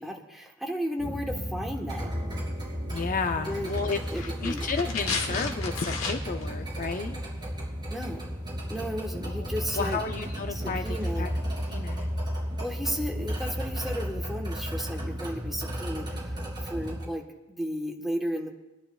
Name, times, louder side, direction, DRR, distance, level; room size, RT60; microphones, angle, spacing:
voice 1, 0.0-2.1 3.4-3.7 4.1-4.7 7.9-8.3 8.7-10.0 10.5-11.3 12.6-17.2 17.5-18.5, equal, ahead, 0 dB, 1.2 m, -34 dB
sound 1, 1.0-17.1, equal, 20° right, 3.1 m, -33 dB
voice 2, 2.9-7.2 9.2-9.5 9.7-10.8 11.1-11.3 11.7-12.1, left 4 dB, 40° left, 7 dB, 0.5 m, -32 dB
sound 2, 3.6-6.5 6.8-6.9, left 4 dB, 75° left, 1.3 m, -34 dB
25.5 x 11.0 x 2.3 m, 1.0 s
head